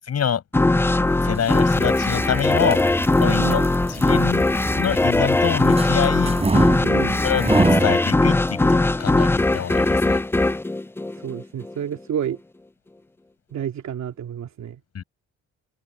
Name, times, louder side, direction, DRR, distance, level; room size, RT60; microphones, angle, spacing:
voice 1, 0.1-0.4 1.2-2.8 3.2-4.5 4.8-6.4 7.2-10.2 14.9-15.0, left 8 dB, 55° left, 7.7 m, -26 dB
sound 1, 0.5-11.7, left 2 dB, 10° left, 0.5 m, -20 dB
sound 2, 1.2-8.0, right 3 dB, 20° right, 7.4 m, -27 dB
voice 2, 3.2-3.7 6.8-7.2 11.2-12.4 13.5-14.8, right 9 dB, 65° right, 2.8 m, -30 dB
cardioid pair, 90°, 30 cm